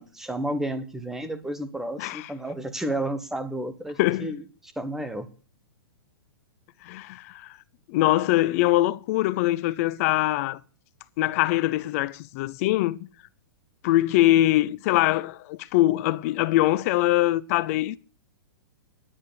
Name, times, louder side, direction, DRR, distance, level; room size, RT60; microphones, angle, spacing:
voice 1, 0.0-4.4 4.8-5.3, right 1 dB, 5° right, 1.3 m, -31 dB
voice 2, 2.0-2.3 4.0-4.3 6.8-7.6 7.9-10.6 11.2-13.0 13.8-18.0, left 16 dB, 40° left, 0.6 m, -23 dB
10.0 x 9.6 x 6.9 m
hypercardioid pair, 145°, 12 cm